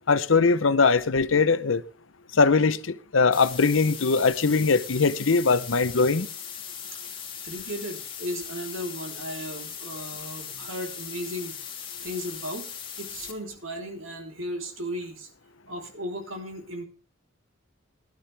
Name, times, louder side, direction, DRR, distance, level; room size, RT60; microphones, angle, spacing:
voice 1, 0.1-1.8 2.3-6.3, left 4 dB, 70° left, 0.8 m, -21 dB
sound 1, 3.3-13.3, left 7 dB, 25° left, 2.7 m, -39 dB
voice 2, 7.4-11.5 12.0-12.7 13.0-15.3 15.7-16.8, equal, 80° right, 3.7 m, -35 dB
18.0 x 12.0 x 3.4 m
head